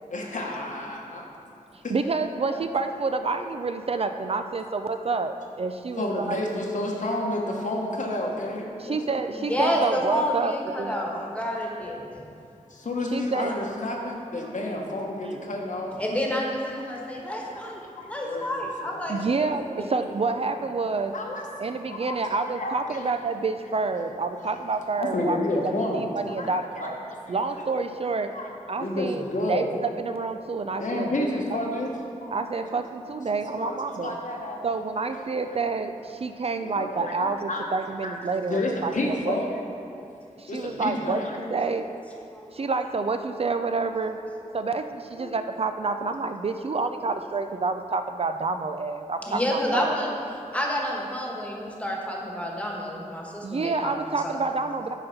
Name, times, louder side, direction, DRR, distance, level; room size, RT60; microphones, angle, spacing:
voice 1, 0.1-1.2 1.8-1.9 2.5-2.6 6.0-9.2 12.7-15.9 16.9-17.2 17.5-19.4 21.1-22.2 22.4-23.1 25.0-26.0 26.4-27.3 28.3-28.5 28.8-29.7 30.8-31.9 32.2-32.3 33.3-34.6 35.2-35.3 36.8-37.7 38.0-38.1 38.5-39.6 40.5-41.4, left 1 dB, 70° left, -1 dB, 1.1 m, -30 dB
voice 2, 1.9-6.4 8.8-11.0 13.1-13.6 19.1-21.1 21.6-25.4 25.9-27.0 27.3-28.3 28.7-31.6 32.3-34.2 34.6-39.4 40.4-41.2 41.5-41.8 42.5-44.2 44.5-49.9 53.4-54.9, right 4 dB, 45° right, 7 dB, 0.4 m, -28 dB
voice 3, 9.3-12.0 16.0-17.8 18.1-19.3 39.9-40.0 42.3-42.7 44.4-44.6 45.2-45.3 49.2-50.2 50.5-53.9 54.2-54.4, equal, 10° left, -2 dB, 1.3 m, -29 dB
9.0 x 4.0 x 5.7 m, 2.4 s
wide cardioid pair, 85°, 14 cm